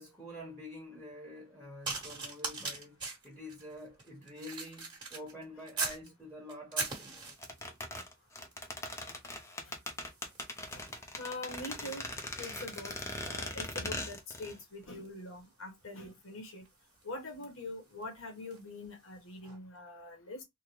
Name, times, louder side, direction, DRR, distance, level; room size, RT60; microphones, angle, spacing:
voice 1, 0.0-3.0 3.2-7.3, left 1 dB, 5° right, 1.2 m, -47 dB
sound 1, 1.8-6.1 6.5-7.7 8.5-8.8 9.0-18.7 19.4-19.6, right 4 dB, 25° right, 1.4 m, -43 dB
sound 2, 7.4-14.6 14.8-14.9, left 1 dB, 15° left, 0.6 m, -40 dB
voice 2, 11.2-12.1 12.4-16.7 17.0-20.4, left 2 dB, 85° left, 1.4 m, -44 dB
3.7 x 2.2 x 3.0 m
head